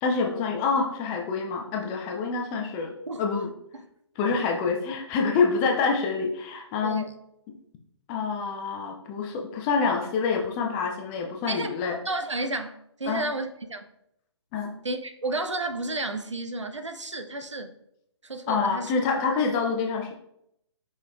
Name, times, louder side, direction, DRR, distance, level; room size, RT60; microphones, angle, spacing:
voice 1, 0.0-3.5 4.2-7.1 7.5-7.6 8.1-12.0 13.1-13.2 14.5-14.7 18.5-20.1, left 5 dB, 15° left, 0.3 m, -27 dB
voice 2, 6.8-7.1 11.5-11.7 12.0-13.9 14.8-17.7 18.2-18.9, right 2 dB, 85° right, 0.5 m, -32 dB
5.0 x 3.9 x 2.3 m
figure-of-eight pair, 130°, 15 cm